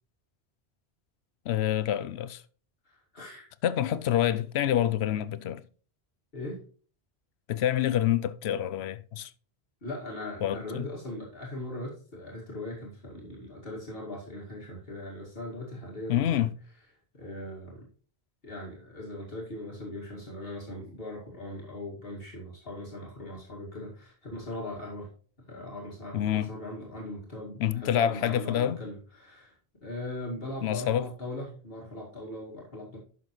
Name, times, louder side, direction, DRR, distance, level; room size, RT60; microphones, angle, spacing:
voice 1, 1.5-2.4 3.6-5.6 7.5-9.3 10.4-10.9 16.1-16.5 26.1-26.5 27.6-28.8 30.6-31.1, left 11 dB, 80° left, 0.8 m, -27 dB
voice 2, 2.9-3.5 6.3-6.6 9.8-16.5 17.1-17.9 18.4-25.1 25.4-29.5 29.8-33.0, left 1 dB, 60° left, 2.4 m, -40 dB
11.0 x 6.3 x 3.1 m
omnidirectional pair, 1.1 m